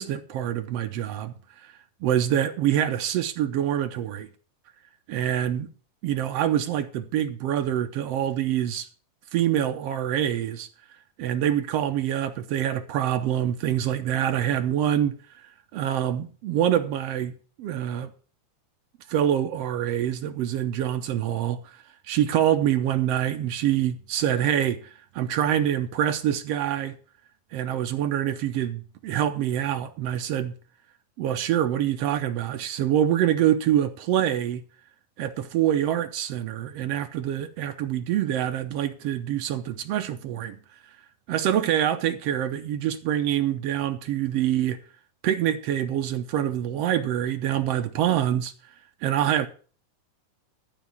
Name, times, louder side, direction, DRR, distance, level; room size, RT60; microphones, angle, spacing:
voice 1, 0.0-1.7 2.0-4.3 5.1-5.7 6.0-8.9 9.3-10.7 11.2-15.1 15.7-17.3 17.6-18.1 19.1-26.9 27.5-30.5 31.2-34.6 35.2-40.6 41.3-44.8 45.2-48.5 49.0-49.5, right 11 dB, 85° right, 1.4 m, -25 dB
14.0 x 4.9 x 8.1 m
omnidirectional pair, 3.7 m